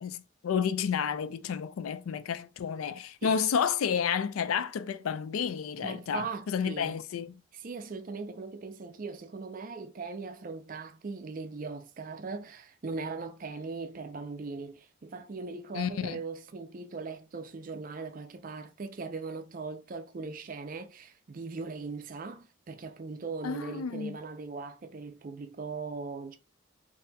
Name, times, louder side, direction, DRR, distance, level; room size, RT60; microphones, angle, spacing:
voice 1, 0.0-7.3 15.7-16.2 23.4-24.2, left 7 dB, 85° left, 0.4 m, -31 dB
voice 2, 5.8-7.0 7.5-26.4, right 4 dB, 40° right, 0.4 m, -39 dB
4.0 x 2.6 x 2.2 m
head